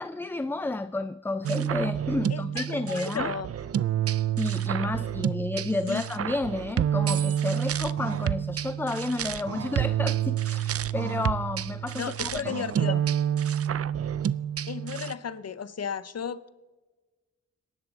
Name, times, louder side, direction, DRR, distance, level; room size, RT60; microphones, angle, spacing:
voice 1, 0.0-3.3 4.4-13.0, left 2 dB, 10° left, 13 dB, 0.4 m, -31 dB
sound 1, 1.4-15.1, right 10 dB, 55° right, 0.5 m, -28 dB
voice 2, 2.3-3.5 5.9-6.0 11.9-13.0 14.7-16.5, left 7 dB, 60° left, 15 dB, 0.7 m, -34 dB
26.0 x 11.0 x 4.0 m, 1.3 s
wide cardioid pair, 100°, 29 cm